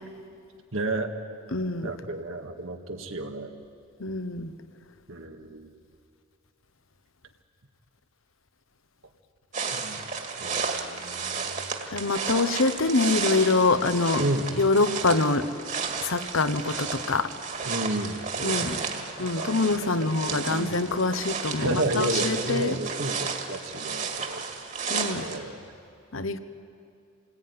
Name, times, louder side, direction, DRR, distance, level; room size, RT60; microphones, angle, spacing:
voice 1, 0.7-1.1 1.8-3.6 5.1-5.7 9.7-10.1 10.4-11.6 14.2-14.5 17.6-19.1 19.4-20.8 21.5-24.8 25.1-25.6, right 2 dB, 90° right, 4 dB, 2.0 m, -32 dB
voice 2, 1.5-1.9 4.0-4.5 11.9-14.2 14.6-15.5 16.0-17.3 18.4-18.8 19.2-22.8 24.9-25.2 26.1-26.4, left 3 dB, 90° left, 11 dB, 1.2 m, -25 dB
sound 1, 9.5-25.4, right 5 dB, 40° right, 2.0 m, -33 dB
27.5 x 19.5 x 9.7 m, 2.4 s
head